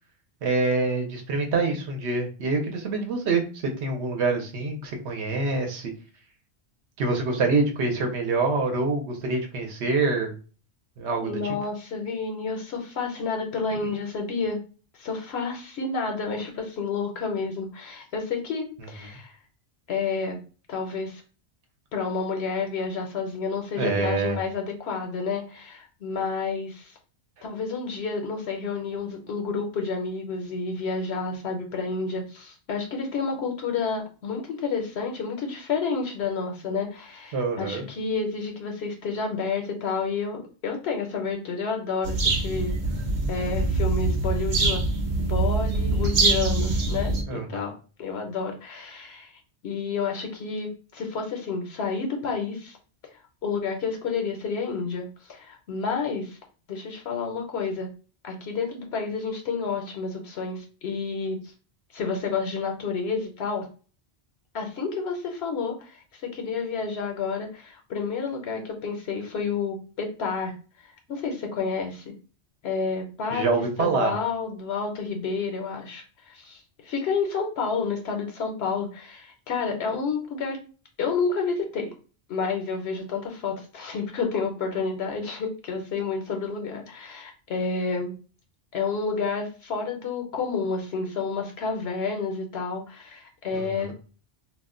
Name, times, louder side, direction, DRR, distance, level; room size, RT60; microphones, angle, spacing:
voice 1, 0.4-5.9 7.0-10.3 11.0-11.6 23.8-24.4 37.3-37.8 47.3-47.7 73.3-74.1 93.5-93.9, right 3 dB, 80° right, 3 dB, 0.9 m, -26 dB
voice 2, 11.2-14.6 15.0-19.4 19.9-20.4 20.7-21.2 21.9-26.9 27.4-42.8 43.3-44.9 45.2-47.7 48.0-49.3 49.6-52.8 53.4-56.4 56.7-57.9 58.2-61.4 61.9-63.7 64.5-70.5 70.8-72.1 72.6-80.6 81.0-81.9 82.3-88.1 88.7-93.9, left 4 dB, 75° left, 3 dB, 0.9 m, -30 dB
sound 1, 42.0-47.2, right 3 dB, 55° right, 0.6 m, -24 dB
2.4 x 2.1 x 3.6 m, 0.37 s
omnidirectional pair, 1.1 m